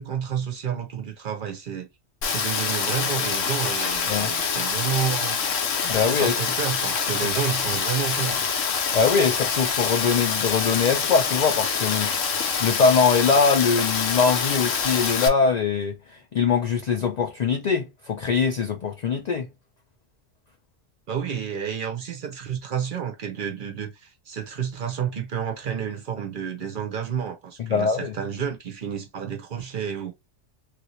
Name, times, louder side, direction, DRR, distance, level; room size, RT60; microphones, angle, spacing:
voice 1, 0.0-1.9 2.3-5.4 5.9-8.5 21.1-30.1, right 8 dB, 55° right, 0.7 m, -30 dB
Rain, 2.2-15.3, left 6 dB, 85° left, 1.1 m, -26 dB
voice 2, 5.8-6.4 8.9-12.1 12.6-19.5 27.6-28.1, left 5 dB, 70° left, 0.4 m, -22 dB
3.3 x 2.6 x 3.0 m
omnidirectional pair, 1.3 m